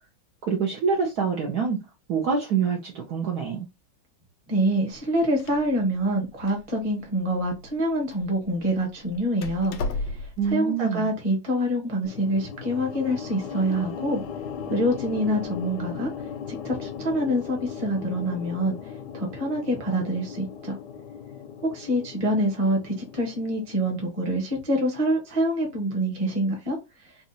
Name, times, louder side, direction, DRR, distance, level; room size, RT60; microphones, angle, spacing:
voice 1, 0.4-1.8 2.1-3.7 10.4-11.1, right 6 dB, 60° right, 1.1 m, -26 dB
voice 2, 4.5-14.2 14.7-16.1 16.6-18.8 19.1-20.8 21.6-26.8, equal, 25° right, 0.9 m, -26 dB
Door, 4.9-10.5, left 2 dB, 85° left, 1.4 m, -37 dB
sound 1, 12.0-24.3, left 7 dB, 70° left, 1.1 m, -38 dB
4.1 x 2.4 x 2.7 m
omnidirectional pair, 2.2 m